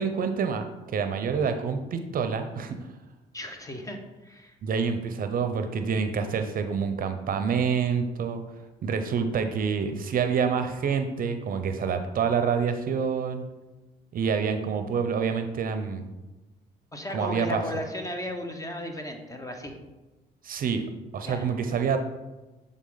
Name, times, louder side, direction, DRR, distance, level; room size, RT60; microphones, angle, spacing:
voice 1, 0.0-2.8 4.6-8.4 8.8-13.5 14.1-16.1 17.1-17.6 20.4-20.8 21.1-22.0, right 6 dB, 55° right, 8 dB, 0.6 m, -27 dB
voice 2, 3.3-4.5 16.9-19.7 21.2-21.5, left 1 dB, 20° left, 4 dB, 1.0 m, -35 dB
7.3 x 3.8 x 3.9 m, 1.1 s
cardioid pair, 80°, 17 cm